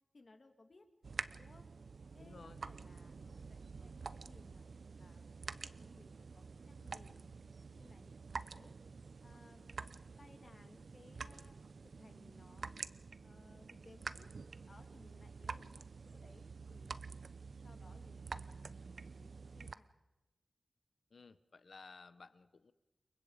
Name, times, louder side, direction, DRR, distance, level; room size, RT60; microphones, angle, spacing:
voice 1, 0.1-0.9 1.4-1.7 2.1-4.7 5.0-8.7 9.2-11.5 12.0-12.8 13.2-14.3 14.7-17.0 17.6-20.0, left 3 dB, 55° left, 6 dB, 2.8 m, -64 dB
sound 1, 1.0-19.8, right 4 dB, 75° right, 0.8 m, -48 dB
voice 2, 2.2-2.6 21.1-22.7, left 4 dB, 75° left, 13 dB, 1.1 m, -56 dB
28.5 x 23.0 x 5.1 m, 1.1 s
wide cardioid pair, 65°, 0 cm